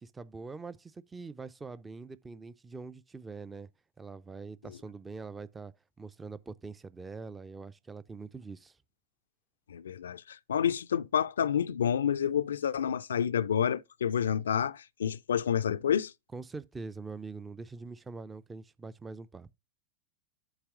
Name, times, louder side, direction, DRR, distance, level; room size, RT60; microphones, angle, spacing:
voice 1, 0.0-3.7 4.0-8.8 16.3-19.5, right 4 dB, 15° right, 0.4 m, -44 dB
voice 2, 9.7-16.1, left 8 dB, 65° left, 0.3 m, -29 dB
8.0 x 2.9 x 6.1 m
figure-of-eight pair, 90°, 0 cm